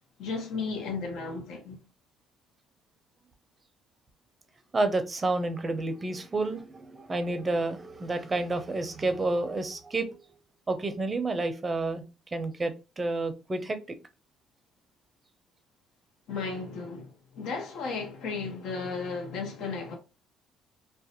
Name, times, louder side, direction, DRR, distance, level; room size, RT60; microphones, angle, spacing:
voice 1, 0.2-1.8 16.3-20.0, left 4 dB, 75° left, 0.7 m, -34 dB
voice 2, 4.7-10.2 10.7-12.0 12.3-14.0, right 2 dB, 25° right, 0.5 m, -30 dB
2.5 x 2.1 x 2.8 m
cardioid pair, 90°, 0 cm